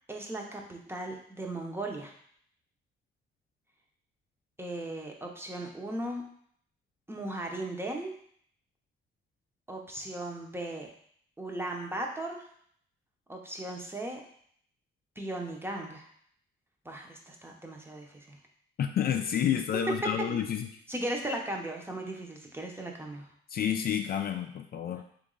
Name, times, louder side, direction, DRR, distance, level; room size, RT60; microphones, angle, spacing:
voice 1, 0.1-2.1 4.6-6.2 7.1-8.1 9.7-10.9 11.4-12.5 13.3-14.2 15.2-16.1 16.8-18.4 20.3-20.4 20.9-23.3, right 1 dB, 10° right, 1 dB, 0.8 m, -37 dB
voice 2, 18.8-20.7 23.5-25.0, left 9 dB, 50° left, 6 dB, 0.4 m, -29 dB
3.4 x 3.1 x 3.8 m, 0.63 s
cardioid pair, 90°, 20 cm